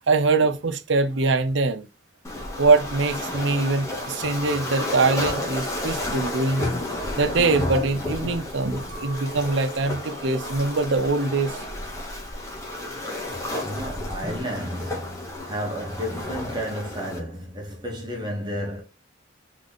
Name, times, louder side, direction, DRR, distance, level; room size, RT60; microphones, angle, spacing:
voice 1, 0.1-1.9 2.6-6.7 7.2-11.6, right 3 dB, 65° right, 0.6 m, -23 dB
Waves surf, 2.2-17.2, left 1 dB, 15° left, 1.2 m, -32 dB
Chink clink, 8.9-13.3 13.5-14.3, right 4 dB, 45° right, 1.4 m, -44 dB
voice 2, 13.5-18.8, equal, 25° right, 1.3 m, -32 dB
3.8 x 3.3 x 4.0 m
head